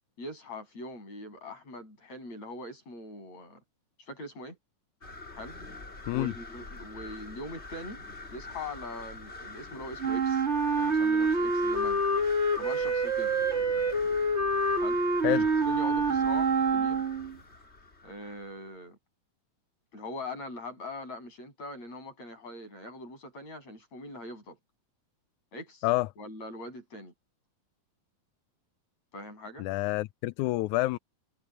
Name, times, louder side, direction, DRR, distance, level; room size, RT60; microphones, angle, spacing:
voice 1, 0.2-3.6 4.1-4.6 5.3-5.6 6.1-8.0 8.3-10.4 10.8-12.0 12.6-13.3 14.8-15.0 15.3-15.4 15.7-17.0 18.0-19.0 19.9-24.6 25.5-25.9 26.2-27.1 29.1-29.7, left 2 dB, 60° left, 8.9 m, -42 dB
sound 1, 5.0-18.6, left 2 dB, 20° left, 2.6 m, -45 dB
Wind instrument woodwind instrument, 10.0-17.3, right 3 dB, 35° right, 1.1 m, -26 dB
voice 2, 29.6-31.0, left 19 dB, 80° left, 2.0 m, -28 dB
omnidirectional pair, 3.5 m